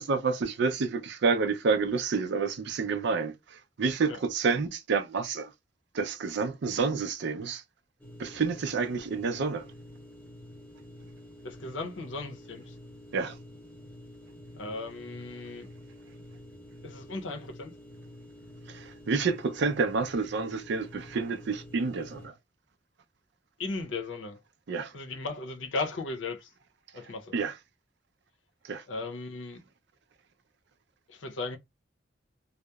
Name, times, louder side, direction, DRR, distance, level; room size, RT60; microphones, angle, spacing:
voice 1, 0.0-5.5 5.9-7.6 8.2-9.7 13.1-13.4 18.7-22.3 24.7-24.9 27.3-27.5 28.6-28.8, right 4 dB, 65° right, 0.4 m, -29 dB
sound 1, 8.0-22.3, left 1 dB, 10° left, 0.6 m, -49 dB
voice 2, 11.4-12.8 14.6-15.7 16.8-17.7 23.6-24.4 24.9-26.5 26.9-27.4 28.9-29.6 31.1-31.6, left 3 dB, 80° left, 0.6 m, -36 dB
2.8 x 2.0 x 2.2 m
head